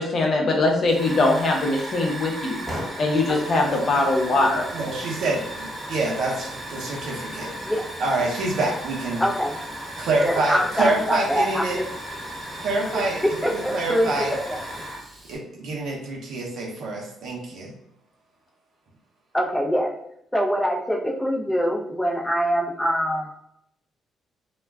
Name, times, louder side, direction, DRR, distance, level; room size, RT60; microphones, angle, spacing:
voice 1, 0.0-2.6 3.0-4.6, left 2 dB, 50° left, 1 dB, 0.7 m, -21 dB
Hiss / Fire, 0.9-15.4, equal, 10° right, 1.1 m, -35 dB
voice 2, 3.3-3.6 7.6-7.9 9.2-9.6 10.2-11.8 12.9-14.6 19.3-19.9 20.3-23.3, equal, 5° left, -1 dB, 0.6 m, -24 dB
voice 3, 4.7-7.5 8.0-9.2 10.0-11.8 12.6-13.2 13.5-14.3 15.3-17.7, right 2 dB, 70° right, -2 dB, 0.6 m, -26 dB
2.2 x 2.2 x 3.4 m, 0.76 s
cardioid pair, 90°, 0 cm